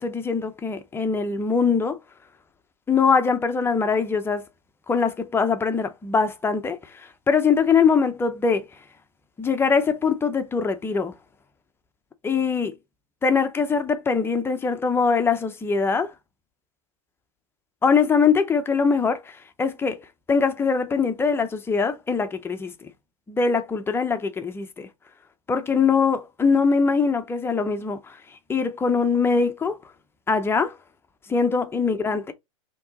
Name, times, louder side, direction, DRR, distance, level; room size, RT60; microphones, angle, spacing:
voice 1, 0.0-2.0 2.9-4.4 4.9-8.7 9.4-11.1 12.2-12.7 13.2-16.1 17.8-20.0 20.3-22.9 23.3-24.9 25.5-28.2 28.5-29.8 30.3-30.7 31.3-32.3, left 5 dB, 15° left, 0.7 m, -22 dB
4.4 x 3.0 x 3.7 m
hypercardioid pair, 110°, 18 cm